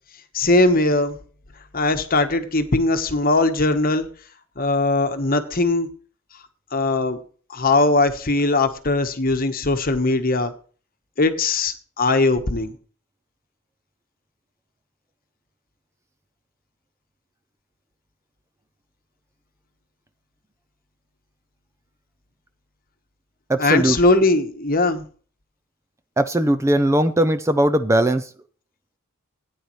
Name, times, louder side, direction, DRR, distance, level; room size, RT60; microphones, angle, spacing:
voice 1, 0.3-1.2 1.7-4.1 4.6-5.9 6.7-7.2 7.5-10.5 11.2-12.7 23.6-25.1, left 2 dB, 45° left, 9 dB, 1.1 m, -20 dB
voice 2, 23.5-24.0 26.2-28.3, right 1 dB, 15° right, 11 dB, 0.5 m, -19 dB
17.0 x 9.5 x 3.1 m, 0.41 s
head